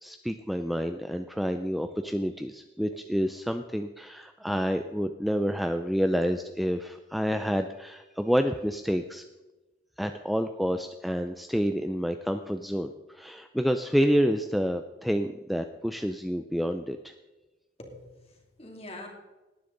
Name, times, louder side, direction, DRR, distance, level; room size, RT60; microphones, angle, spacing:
voice 1, 0.0-9.2 10.0-17.1, equal, ahead, 7 dB, 0.4 m, -28 dB
voice 2, 17.8-19.1, left 1 dB, 30° left, 1 dB, 2.7 m, -44 dB
18.5 x 10.5 x 3.9 m, 1.1 s
head